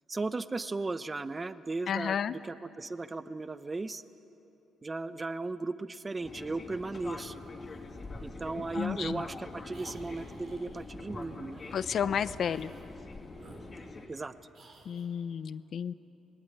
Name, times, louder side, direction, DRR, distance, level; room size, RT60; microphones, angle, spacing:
voice 1, 0.1-4.0 4.8-7.5 8.2-11.6 14.1-14.3, right 3 dB, 25° right, 13 dB, 0.8 m, -36 dB
voice 2, 1.9-2.3 8.8-9.2 11.7-12.7 14.9-15.9, left 8 dB, 60° left, 15 dB, 0.7 m, -32 dB
Fixed-wing aircraft airplane, 6.2-14.1, left 3 dB, 35° left, 2.9 m, -44 dB
sound 1, 9.7-10.9 11.5-11.8 12.4-12.9 13.3-14.2 14.5-15.1, right 3 dB, 60° right, 5.2 m, -55 dB
25.5 x 20.5 x 9.9 m, 2.9 s
cardioid pair, 90°, 0 cm